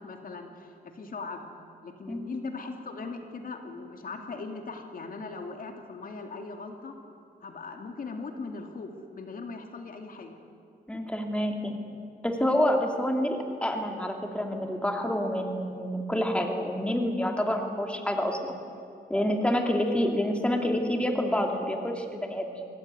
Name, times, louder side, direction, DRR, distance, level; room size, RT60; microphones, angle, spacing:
voice 1, 0.0-1.5 1.8-7.0 7.4-10.3, left 4 dB, 55° left, 4 dB, 2.5 m, -39 dB
voice 2, 10.9-11.8 12.2-18.5 19.1-22.7, left 1 dB, 5° left, 3 dB, 2.7 m, -28 dB
24.5 x 18.0 x 9.6 m, 2.5 s
wide cardioid pair, 120°, 17 cm